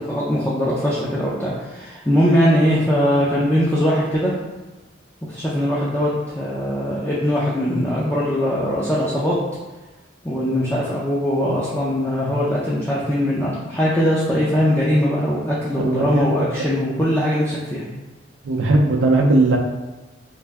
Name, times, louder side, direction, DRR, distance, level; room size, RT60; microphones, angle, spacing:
voice 1, 0.0-4.3 5.3-9.3 10.2-17.8, equal, 10° left, -7 dB, 0.5 m, -21 dB
voice 2, 15.8-16.7 18.4-19.6, right 2 dB, 80° right, 0 dB, 0.5 m, -18 dB
3.2 x 2.6 x 3.4 m, 1.2 s
head